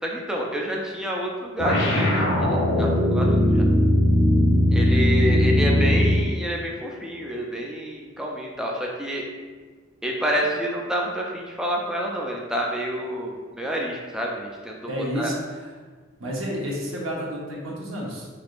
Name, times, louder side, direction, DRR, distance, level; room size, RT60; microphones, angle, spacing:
voice 1, 0.0-3.6 4.7-9.2 10.0-15.3, equal, 5° right, -2 dB, 0.3 m, -28 dB
sound 1, 1.6-6.3, left 1 dB, 65° left, 0.9 m, -19 dB
voice 2, 14.9-15.7 16.2-18.3, equal, 80° right, -3 dB, 0.9 m, -30 dB
3.7 x 3.4 x 2.5 m, 1.5 s
head